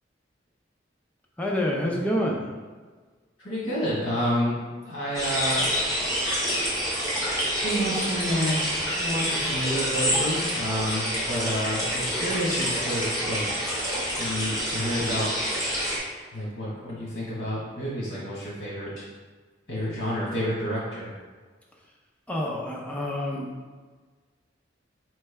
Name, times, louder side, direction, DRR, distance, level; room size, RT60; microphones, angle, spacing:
voice 1, 1.4-2.5 22.3-23.5, left 1 dB, 5° left, -2 dB, 0.5 m, -27 dB
voice 2, 3.4-4.6 4.8-5.7 7.6-13.5 14.2-15.3 16.3-19.1 19.7-21.1, equal, 60° left, -7 dB, 1.2 m, -29 dB
sound 1, 5.1-16.0, equal, 15° right, 1.3 m, -27 dB
4.5 x 3.2 x 3.3 m, 1.4 s
head